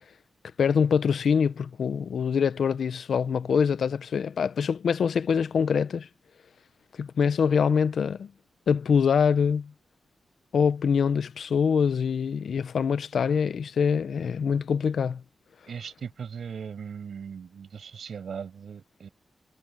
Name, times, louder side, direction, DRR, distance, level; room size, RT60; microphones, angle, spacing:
voice 1, 0.6-6.1 7.0-8.3 8.7-9.7 10.5-15.2, left 6 dB, 80° left, 0.9 m, -24 dB
voice 2, 15.7-19.1, right 6 dB, 75° right, 7.9 m, -38 dB
cardioid pair, 60°, 0 cm